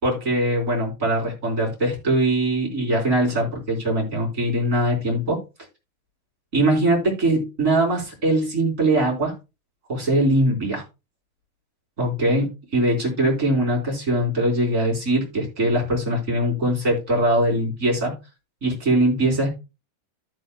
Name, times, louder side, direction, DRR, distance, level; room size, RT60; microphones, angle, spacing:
voice 1, 0.0-5.4 6.5-9.3 9.9-10.8 12.0-18.1 18.6-19.5, right 1 dB, 20° right, -1 dB, 3.5 m, -21 dB
14.5 x 6.2 x 2.2 m, 0.27 s
omnidirectional pair, 4.8 m